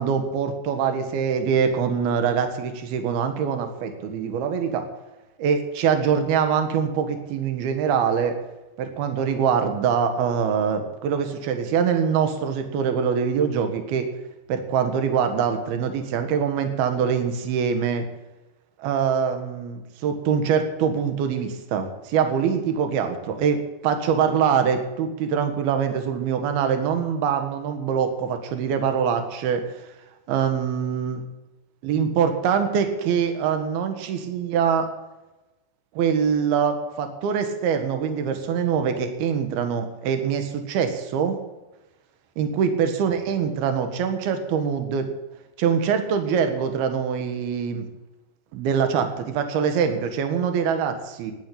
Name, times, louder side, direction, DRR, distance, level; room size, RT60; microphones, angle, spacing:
voice 1, 0.0-4.9 5.4-8.4 8.8-14.1 14.5-18.0 18.8-29.9 30.3-31.2 31.8-34.9 35.9-41.4 42.4-45.1 45.6-47.9 48.5-51.3, right 7 dB, 70° right, 7 dB, 3.4 m, -24 dB
13.0 x 10.0 x 8.6 m, 1.1 s
omnidirectional pair, 4.8 m